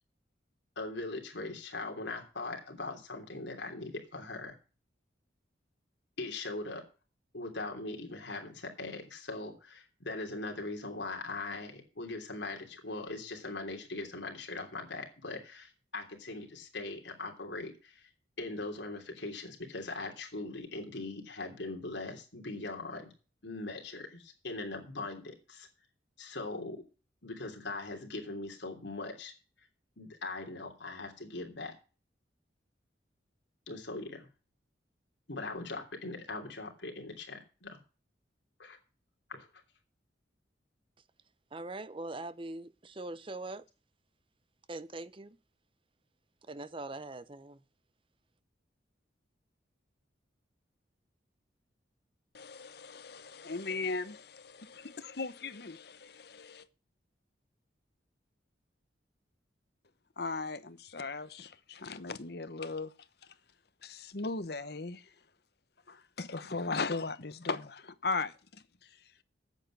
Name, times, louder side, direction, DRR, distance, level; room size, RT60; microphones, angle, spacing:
voice 1, 0.8-4.5 6.2-6.8 7.3-18.1 18.4-23.1 23.4-25.7 26.2-26.8 27.2-29.3 30.0-31.7 33.7-34.3 35.3-37.8 38.6-38.8 39.3-39.5, left 2 dB, 75° left, 3.1 m, -40 dB
voice 2, 41.5-43.6 44.7-45.4 46.5-47.6, right 2 dB, 30° right, 0.7 m, -42 dB
voice 3, 52.3-56.6 60.2-62.9 63.8-65.0 65.9-68.3, left 3 dB, 60° left, 1.0 m, -37 dB
8.9 x 8.2 x 7.5 m
head